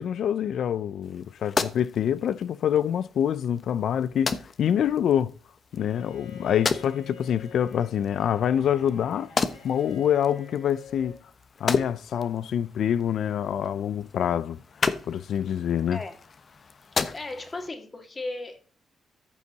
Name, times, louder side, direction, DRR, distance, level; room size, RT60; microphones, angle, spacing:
voice 1, 0.0-5.3 5.7-9.3 9.6-11.2 11.6-14.6 15.1-16.0, left 9 dB, 75° left, 0.4 m, -26 dB
sound 1, 1.0-17.7, left 5 dB, 50° left, 1.0 m, -35 dB
Bowed string instrument, 5.7-11.2, left 6 dB, 90° left, 2.9 m, -47 dB
voice 2, 17.1-18.8, left 2 dB, 35° left, 2.6 m, -36 dB
14.0 x 5.6 x 4.0 m
cardioid pair, 75°, 0 cm